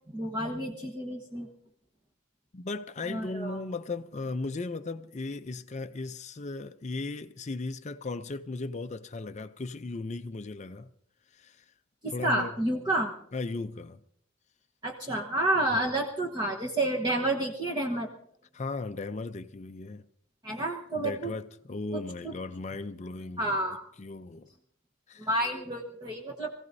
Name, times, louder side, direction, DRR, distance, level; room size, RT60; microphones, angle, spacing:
voice 1, 0.1-1.5 3.0-3.6 12.0-13.1 14.8-18.1 20.4-21.3 21.9-22.3 23.4-23.8 25.2-26.5, right 1 dB, 20° right, 1.1 m, -30 dB
voice 2, 2.5-10.9 11.3-11.6 12.1-12.5 13.3-14.0 18.5-20.1 21.0-24.5 25.1-25.3, left 3 dB, 35° left, 0.5 m, -37 dB
25.5 x 16.0 x 2.7 m
head